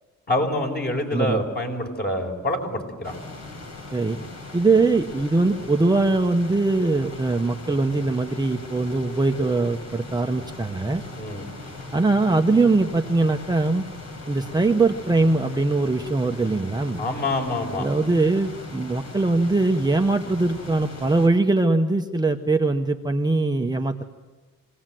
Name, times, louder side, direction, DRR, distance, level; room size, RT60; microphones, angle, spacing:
voice 1, 0.3-3.2 11.1-11.4 17.0-17.9, left 1 dB, 35° left, 3 dB, 5.1 m, -26 dB
voice 2, 1.1-1.4 3.9-4.2 4.5-11.0 11.9-13.8 14.3-17.0 17.8-24.0, right 3 dB, 15° right, 3 dB, 1.0 m, -21 dB
sound 1, 3.0-21.3, left 2 dB, 65° left, 5.1 m, -39 dB
25.0 x 17.5 x 7.7 m, 1.3 s
cardioid pair, 90°, 30 cm